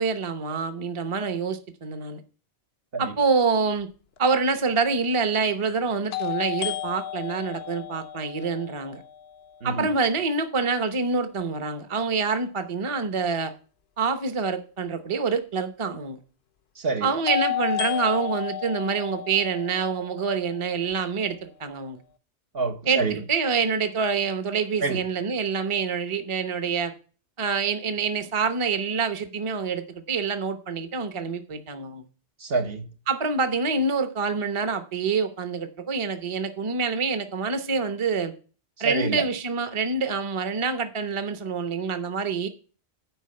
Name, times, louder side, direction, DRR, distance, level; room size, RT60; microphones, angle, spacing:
voice 1, 0.0-2.2 3.0-3.9 4.2-9.0 9.6-13.5 14.0-16.2 17.0-22.0 22.9-26.9 27.4-32.0 33.1-38.3 38.8-42.5, right 5 dB, 30° right, 0.9 m, -26 dB
sound 1, 4.2-4.3 6.1-10.0 17.3-21.3, left 13 dB, 65° left, 0.9 m, -33 dB
voice 2, 16.8-17.1 22.5-23.2 24.8-25.0 32.4-32.8 38.8-39.2, right 4 dB, 60° right, 1.2 m, -27 dB
9.0 x 5.1 x 7.6 m
omnidirectional pair, 1.2 m